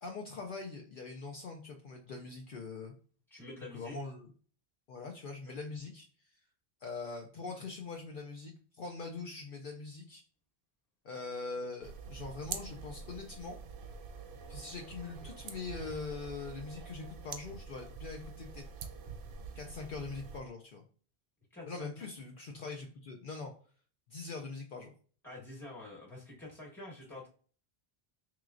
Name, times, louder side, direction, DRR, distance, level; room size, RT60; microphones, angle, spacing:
voice 1, 0.0-2.9 3.7-4.3 4.9-6.4 6.8-10.2 11.0-13.6 14.5-18.7 19.6-20.8 21.7-23.5 24.1-24.9, left 4 dB, 60° left, 2 dB, 0.7 m, -43 dB
voice 2, 3.3-3.9 5.5-5.6 21.5-22.1 25.2-27.3, left 2 dB, ahead, -3 dB, 1.2 m, -47 dB
sound 1, 11.8-20.4, right 5 dB, 65° right, 0.7 m, -46 dB
4.5 x 3.1 x 2.4 m, 0.43 s
omnidirectional pair, 1.0 m